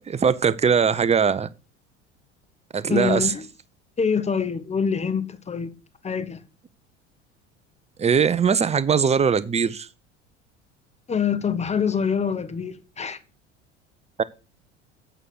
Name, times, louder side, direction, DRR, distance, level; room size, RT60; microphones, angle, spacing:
voice 1, 0.1-1.5 2.7-3.3 8.0-9.9 14.2-14.3, right 6 dB, 20° right, 0.9 m, -20 dB
voice 2, 2.9-3.5 4.0-5.7 6.0-6.4 11.1-13.2, left 6 dB, 20° left, 1.4 m, -25 dB
8.8 x 6.6 x 6.5 m
figure-of-eight pair, 70°, 36 cm